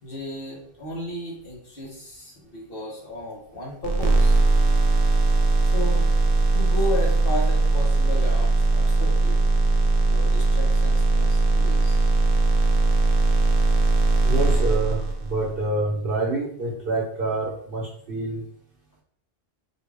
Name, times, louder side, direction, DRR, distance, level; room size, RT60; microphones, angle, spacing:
voice 1, 0.0-4.4 5.4-5.5 5.7-9.4 10.1-12.1, left 1 dB, 65° left, -3 dB, 1.3 m, -34 dB
sound 1, 3.8-15.5, right 2 dB, 45° right, 0.5 m, -20 dB
voice 2, 14.2-18.4, right 2 dB, 65° right, -4 dB, 1.0 m, -27 dB
4.3 x 2.3 x 3.4 m, 0.62 s
omnidirectional pair, 1.0 m